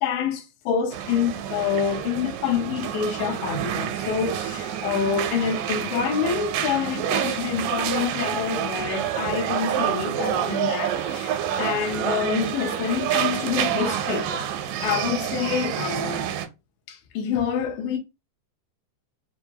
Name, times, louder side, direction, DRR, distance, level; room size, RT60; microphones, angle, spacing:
voice 1, 0.0-14.3 14.8-16.3 16.9-18.0, left 7 dB, 90° left, 2.3 m, -27 dB
sound 1, 0.9-16.5, right 10 dB, 85° right, 2.1 m, -28 dB
5.3 x 2.3 x 2.7 m
omnidirectional pair, 3.7 m